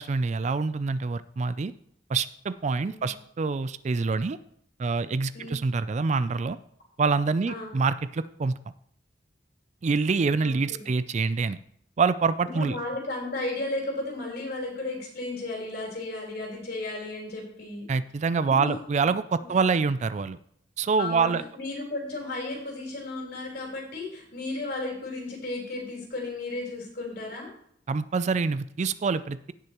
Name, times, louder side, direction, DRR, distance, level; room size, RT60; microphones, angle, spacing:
voice 1, 0.0-1.7 2.1-4.4 4.8-6.6 7.0-8.5 9.8-11.6 12.0-12.8 17.9-20.4 20.8-21.4 27.9-29.5, right 4 dB, 40° right, 15 dB, 0.4 m, -26 dB
voice 2, 2.8-3.1 5.3-5.6 7.5-7.7 10.4-10.9 12.4-17.9 18.6-18.8 19.4-19.5 21.0-27.5, left 2 dB, 60° left, -2 dB, 4.1 m, -34 dB
17.0 x 6.5 x 3.0 m, 0.68 s
head